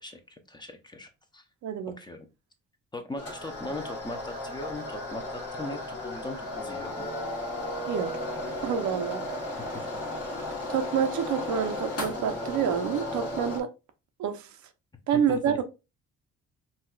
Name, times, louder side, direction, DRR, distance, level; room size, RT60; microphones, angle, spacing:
voice 1, 0.0-1.4 2.0-2.3 2.9-7.1 15.3-15.6, left 2 dB, 15° left, 0.6 m, -39 dB
voice 2, 1.6-1.9 7.9-8.1 8.6-9.6 10.7-13.7 14.2-14.5 15.1-15.6, right 8 dB, 70° right, 0.6 m, -28 dB
sound 1, 3.2-13.6, left 1 dB, 50° left, 1.3 m, -34 dB
4.0 x 2.3 x 2.2 m
cardioid pair, 90°, 30 cm